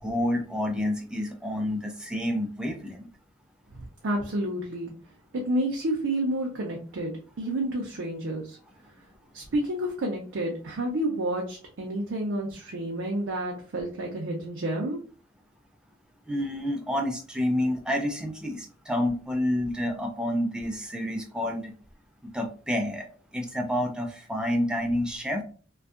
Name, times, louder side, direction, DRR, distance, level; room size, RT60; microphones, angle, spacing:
voice 1, 0.0-3.1 16.3-21.7 22.3-23.1 23.3-25.4, left 1 dB, 5° right, 3 dB, 0.3 m, -29 dB
voice 2, 3.7-4.9 5.3-8.6 9.3-15.0, right 1 dB, 75° right, 0 dB, 0.5 m, -30 dB
2.6 x 2.3 x 2.4 m, 0.40 s
head